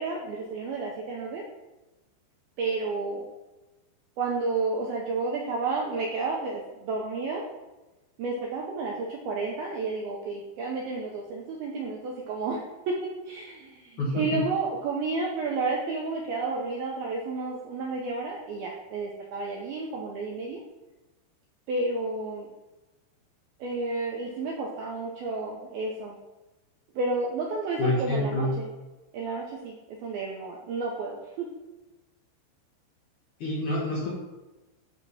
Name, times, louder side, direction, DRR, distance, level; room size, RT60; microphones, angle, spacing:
voice 1, 0.0-1.4 2.6-3.3 4.2-7.5 8.2-20.6 21.7-22.5 23.6-26.2 26.9-28.7 29.1-31.5, right 3 dB, 80° right, -1 dB, 2.2 m, -31 dB
voice 2, 14.0-14.4 27.8-28.5 33.4-34.1, left 1 dB, 60° left, -5 dB, 2.2 m, -27 dB
10.5 x 3.5 x 5.6 m, 1.1 s
omnidirectional pair, 5.3 m